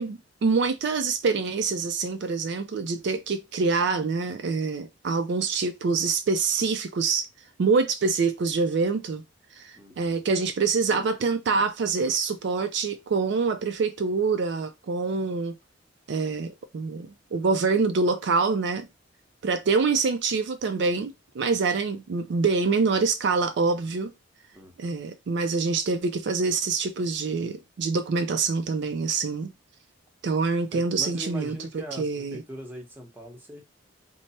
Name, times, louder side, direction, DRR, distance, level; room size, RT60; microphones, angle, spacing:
voice 1, 0.0-7.3 7.6-9.2 9.5-15.5 16.1-18.9 19.4-24.1 24.8-29.5 30.2-31.6 32.0-32.4, right 4 dB, 60° right, 0.4 m, -25 dB
voice 2, 9.7-10.2 24.5-25.0 30.7-33.6, equal, 10° right, 0.8 m, -41 dB
3.2 x 2.0 x 4.1 m
head